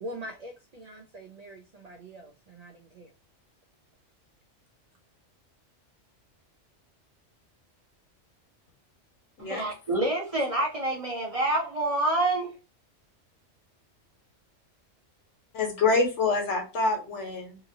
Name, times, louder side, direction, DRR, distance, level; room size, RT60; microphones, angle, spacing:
voice 1, 0.0-3.1, right 1 dB, 85° right, 0.3 m, -43 dB
voice 2, 9.4-12.5, right 2 dB, 35° right, 0.7 m, -27 dB
voice 3, 15.5-17.6, left 3 dB, 70° left, 1.2 m, -26 dB
2.8 x 2.6 x 2.6 m
omnidirectional pair, 1.3 m